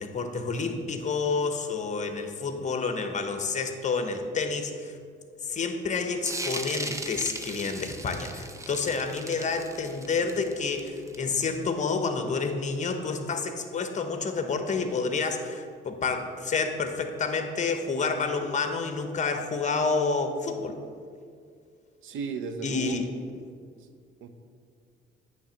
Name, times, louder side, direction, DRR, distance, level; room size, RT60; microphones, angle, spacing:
voice 1, 0.0-5.0 5.4-20.8 22.6-23.1, left 4 dB, 35° left, 6 dB, 0.9 m, -29 dB
sound 1, 6.3-11.6, right 2 dB, 15° right, 0.6 m, -37 dB
voice 2, 22.0-23.0 23.7-23.9 24.2-24.3, right 5 dB, 85° right, 7 dB, 0.7 m, -35 dB
8.6 x 3.4 x 6.3 m, 2.2 s
cardioid pair, 90°, 20 cm